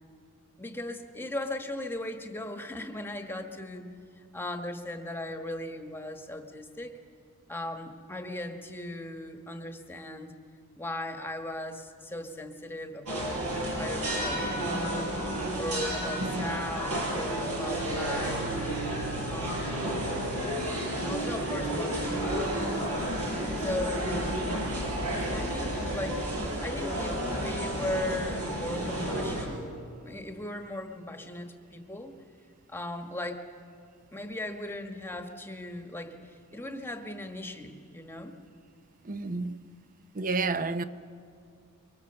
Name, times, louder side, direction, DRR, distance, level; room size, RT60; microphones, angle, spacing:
voice 1, 0.6-3.8 4.2-6.9 7.5-10.3 10.8-15.1 15.6-18.6 19.2-19.8 20.9-22.5 23.6-24.3 25.1-29.7 30.0-32.2 32.7-33.4 34.1-38.4, left 1 dB, 10° left, 1.3 m, -38 dB
sound 1, 13.1-29.4, right 1 dB, 80° right, 6.5 m, -31 dB
voice 2, 39.0-39.6 40.1-40.8, right 3 dB, 40° right, 0.7 m, -30 dB
25.0 x 23.5 x 6.9 m
head